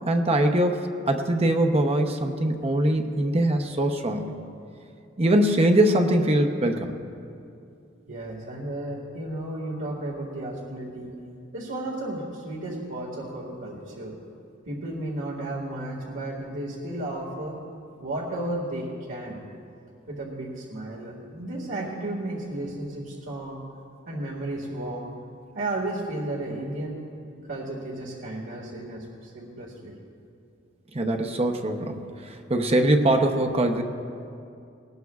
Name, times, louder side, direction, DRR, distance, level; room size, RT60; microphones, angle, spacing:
voice 1, 0.0-4.3 5.2-6.9 30.9-33.8, right 1 dB, 30° right, 5 dB, 0.8 m, -22 dB
voice 2, 8.1-11.1 11.5-14.2 14.7-17.6 18.0-19.4 20.1-23.6 24.1-25.1 25.5-27.0 27.5-29.9, right 1 dB, 80° right, -5 dB, 1.9 m, -33 dB
19.5 x 19.0 x 2.4 m, 2.5 s
head